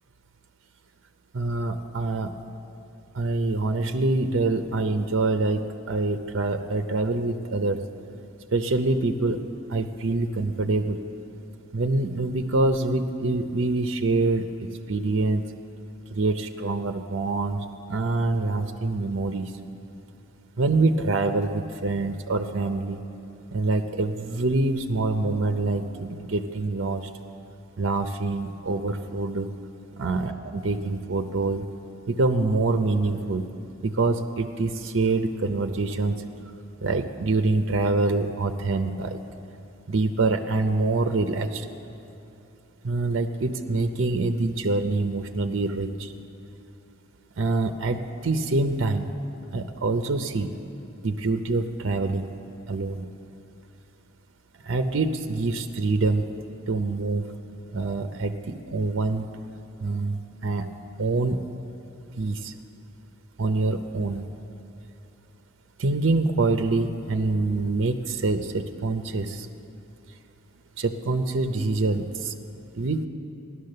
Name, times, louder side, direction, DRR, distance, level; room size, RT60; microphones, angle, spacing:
voice 1, 1.3-2.3 3.1-5.6 5.9-7.8 8.5-9.4 9.7-11.0 11.7-15.4 16.1-19.5 20.6-23.0 23.5-27.1 27.8-29.5 30.0-31.6 32.1-33.5 33.8-36.2 36.8-39.2 39.9-41.7 42.8-46.1 47.4-49.1 49.5-50.5 51.0-52.3 52.7-53.1 54.6-56.2 56.7-57.2 57.7-59.3 59.8-60.7 61.0-61.4 62.2-62.5 63.4-64.2 65.8-69.5 70.8-72.3 72.7-73.1, right 3 dB, 65° right, 7 dB, 0.6 m, -25 dB
15.0 x 11.0 x 6.6 m, 2.8 s
head